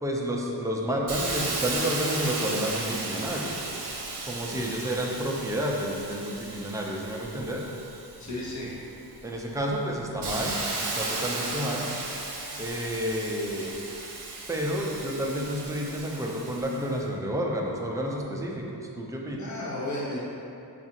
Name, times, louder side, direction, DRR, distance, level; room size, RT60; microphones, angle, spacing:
voice 1, 0.0-3.6 4.2-7.6 9.2-11.9 12.6-13.8 14.5-19.5, equal, 10° right, -2 dB, 0.3 m, -30 dB
Hiss, 1.1-8.6 9.2-16.9, right 3 dB, 75° right, 0.7 m, -35 dB
voice 2, 4.5-4.9 8.2-8.7 19.4-20.2, left 1 dB, 45° left, -5 dB, 0.8 m, -34 dB
5.9 x 2.4 x 2.8 m, 2.7 s
wide cardioid pair, 130°, 40 cm